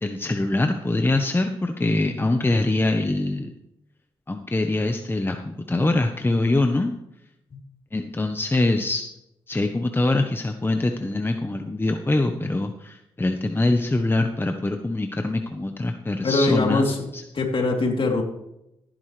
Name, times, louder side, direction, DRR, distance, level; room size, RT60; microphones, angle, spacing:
voice 1, 0.0-3.5 4.3-6.9 7.9-9.1 9.5-17.2, left 2 dB, 20° left, 6 dB, 1.1 m, -24 dB
voice 2, 16.2-17.1 17.3-18.2, left 2 dB, 50° left, 1 dB, 3.4 m, -22 dB
15.5 x 10.5 x 3.4 m, 0.83 s
supercardioid pair, 55°, 11 cm